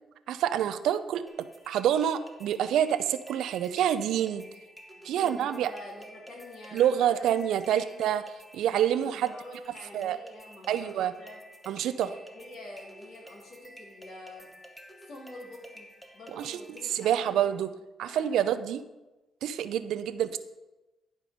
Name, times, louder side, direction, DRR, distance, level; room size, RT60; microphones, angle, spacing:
voice 1, 0.3-4.4 5.0-5.7 6.7-8.2 8.5-9.3 9.9-10.2 10.7-11.1 11.7-12.1 16.4-16.6 16.8-17.7 18.0-18.8 19.4-20.4, right 10 dB, 80° right, 12 dB, 0.5 m, -27 dB
sound 1, 1.3-17.3, equal, 5° left, 1.3 m, -51 dB
voice 2, 5.0-7.3 7.6-8.1 9.0-10.9 11.2-11.4 12.0-14.5 15.0-15.9 16.1-17.5 18.1-18.4, left 1 dB, 70° left, -2 dB, 2.9 m, -47 dB
11.0 x 5.3 x 4.9 m, 1.1 s
cardioid pair, 90°, 0 cm